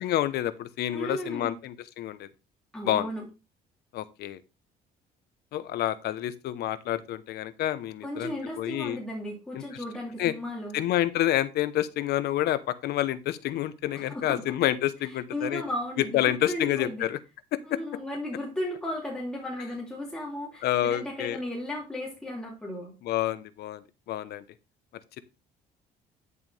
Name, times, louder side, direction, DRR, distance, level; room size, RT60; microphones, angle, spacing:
voice 1, 0.0-2.3 2.8-3.1 3.9-4.4 5.5-9.0 9.5-9.6 10.2-10.3 10.7-15.6 16.1-17.2 17.5-17.8 20.6-21.4 23.0-24.4, left 13 dB, 75° left, 14 dB, 1.0 m, -28 dB
voice 2, 0.9-1.6 2.7-3.3 8.0-10.8 13.9-14.4 15.3-17.1 17.6-22.9, left 1 dB, 5° left, -3 dB, 3.1 m, -35 dB
11.0 x 6.8 x 3.4 m, 0.28 s
cardioid pair, 110°, 17 cm